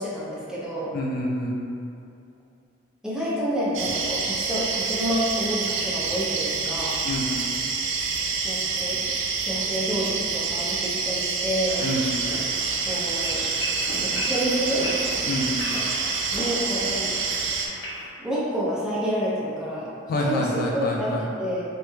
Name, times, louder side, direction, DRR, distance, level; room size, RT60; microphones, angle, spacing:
voice 1, 0.0-0.9 3.0-7.0 8.4-9.0 9.4-11.8 12.9-13.4 14.0-14.9 16.0-17.1 18.2-19.9 20.2-21.1 21.4-21.6, equal, 5° right, -9 dB, 0.5 m, -28 dB
voice 2, 0.9-1.6 7.0-7.3 11.8-12.1 15.3-15.6 20.1-21.3, left 1 dB, 50° left, -2 dB, 0.3 m, -27 dB
sound 1, 3.7-17.7, right 5 dB, 75° right, 0.4 m, -27 dB
sound 2, 11.7-18.1, equal, 75° left, 0.7 m, -35 dB
3.1 x 3.0 x 2.2 m, 2.5 s
head